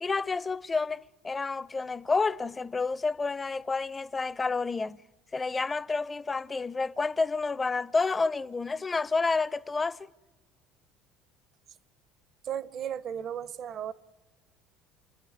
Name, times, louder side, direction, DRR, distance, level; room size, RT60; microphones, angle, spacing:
voice 1, 0.0-5.0 5.3-10.1, left 4 dB, 25° left, 0.6 m, -29 dB
voice 2, 12.4-13.9, right 9 dB, 50° right, 0.8 m, -35 dB
28.5 x 10.5 x 9.5 m
hypercardioid pair, 65°, 0 cm